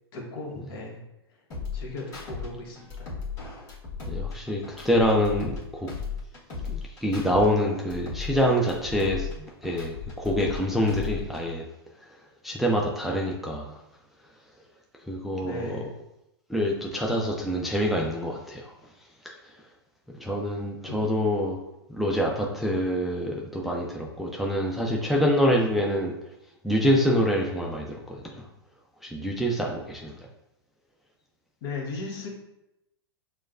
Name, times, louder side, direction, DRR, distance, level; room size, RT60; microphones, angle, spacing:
voice 1, 0.1-1.0 1.7-3.1 15.4-15.9 20.9-21.0 31.6-32.3, left 2 dB, 60° left, -2 dB, 1.3 m, -36 dB
sound 1, 1.5-2.5 2.8-5.6 5.9-7.5 7.8-10.6 10.9-11.5, left 5 dB, 25° left, 1.4 m, -36 dB
voice 2, 4.1-5.9 6.7-9.3 9.6-11.6 12.4-13.8 15.1-15.8 16.5-18.7 19.2-19.3 20.2-21.6 21.9-26.1 26.6-28.4 29.0-30.1, equal, ahead, -2 dB, 0.4 m, -26 dB
6.2 x 2.2 x 2.5 m, 0.87 s
hypercardioid pair, 115°, 14 cm